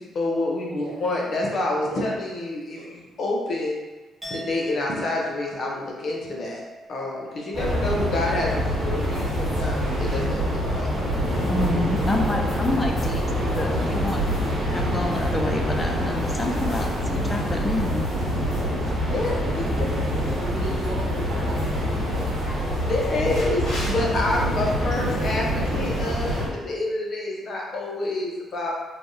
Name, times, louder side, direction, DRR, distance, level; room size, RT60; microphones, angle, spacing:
voice 1, 0.0-3.7 4.3-6.6 6.9-10.9 11.7-11.8 19.1-19.9 22.8-28.7, left 2 dB, 55° left, -2 dB, 0.7 m, -28 dB
voice 2, 0.7-1.0 1.8-2.0 2.7-2.9 11.8-12.1 12.6-12.8 18.6-19.0 20.0-22.9 23.2-23.6 24.3-24.7, right 2 dB, 75° right, -4 dB, 0.9 m, -38 dB
Chink clink, 4.2-10.1 10.4-10.8, right 1 dB, ahead, 0.9 m, -43 dB
sound 1, 7.5-26.5, equal, 55° right, 1.1 m, -26 dB
sound 2, 8.9-26.4, left 1 dB, 85° left, 1.5 m, -38 dB
voice 3, 11.4-14.3 14.7-18.1, left 2 dB, 25° left, 3 dB, 0.3 m, -28 dB
3.2 x 2.3 x 2.6 m, 1.2 s
cardioid pair, 90°, 0 cm